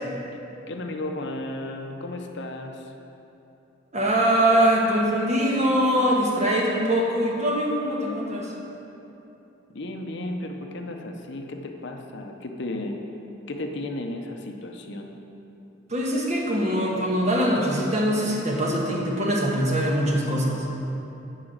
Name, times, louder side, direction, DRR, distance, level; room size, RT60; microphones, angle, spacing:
voice 1, 0.7-2.9 9.7-13.0 13.5-15.1, left 1 dB, 60° left, 3 dB, 0.8 m, -34 dB
voice 2, 3.9-8.5 15.9-20.7, right 1 dB, 35° right, -2 dB, 1.6 m, -23 dB
11.5 x 4.9 x 7.5 m, 2.9 s
head